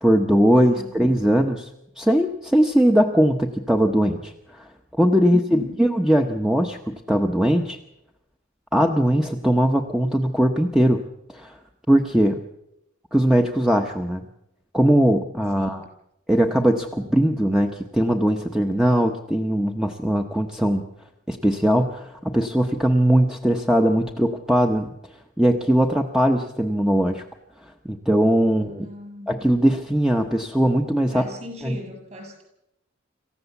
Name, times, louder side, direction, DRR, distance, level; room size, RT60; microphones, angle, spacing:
voice 1, 0.0-1.7 2.0-4.7 5.0-7.8 8.7-11.0 11.3-11.5 11.9-12.4 13.1-14.2 14.7-15.8 16.3-20.8 21.3-24.9 25.4-27.2 27.8-28.9 29.3-31.2 31.6-31.8, equal, 5° right, 4 dB, 1.0 m, -20 dB
voice 2, 5.2-5.8 15.6-15.9 28.5-29.3 31.1-32.4, left 1 dB, 35° right, 4 dB, 7.3 m, -40 dB
26.5 x 15.0 x 7.1 m, 0.86 s
head